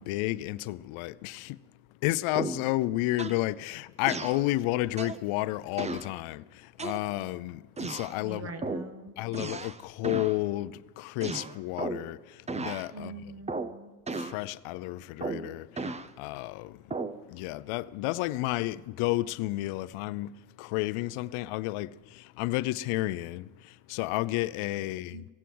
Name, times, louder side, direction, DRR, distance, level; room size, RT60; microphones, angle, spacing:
voice 1, 0.0-1.6 2.0-8.5 9.2-13.1 14.1-16.8 17.3-20.3 20.6-25.3, left 18 dB, 90° left, 0.6 m, -31 dB
sound 1, 2.3-2.7 3.2-3.5 4.1-4.4 5.0-5.3 5.8-6.1 6.8-7.3 7.8-8.2 8.6-8.9 9.3-9.8 10.0-10.4 11.2-12.1 12.5-12.9 13.5-13.8 14.1-14.4 15.2-16.1 16.9-17.2, right 3 dB, 15° right, 0.5 m, -35 dB
voice 2, 8.2-9.1 12.9-14.0 25.1-25.2, right 3 dB, 30° right, 1.4 m, -43 dB
17.5 x 8.4 x 7.7 m
cardioid pair, 110°, 48 cm